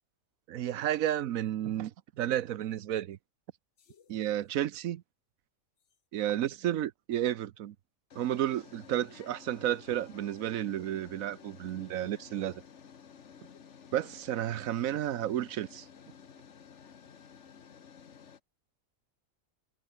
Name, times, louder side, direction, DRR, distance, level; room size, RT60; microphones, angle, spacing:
voice 1, 0.5-3.2 4.1-5.0 6.1-7.7 8.2-12.6 13.9-15.9, right 12 dB, 85° right, 1.2 m, -32 dB
sound 1, 3.8-4.2 5.9-6.0 8.1-18.4, left 7 dB, 60° left, 1.5 m, -53 dB
omnidirectional pair, 1.4 m